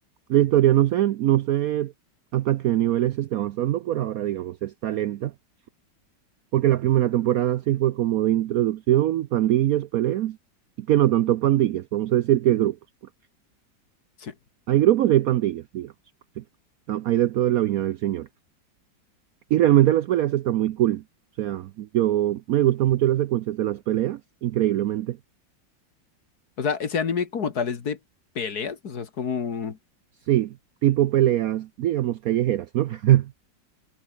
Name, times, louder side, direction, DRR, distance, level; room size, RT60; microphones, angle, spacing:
voice 1, 0.3-1.9 2.3-5.3 6.5-10.4 10.8-12.8 14.7-15.9 16.4-16.5 16.9-18.3 19.5-21.0 21.4-25.2 30.3-30.6 30.8-33.3, right 13 dB, 70° right, 0.9 m, -22 dB
voice 2, 26.6-28.0 28.4-29.8, left 6 dB, 55° left, 2.3 m, -28 dB
omnidirectional pair, 2.0 m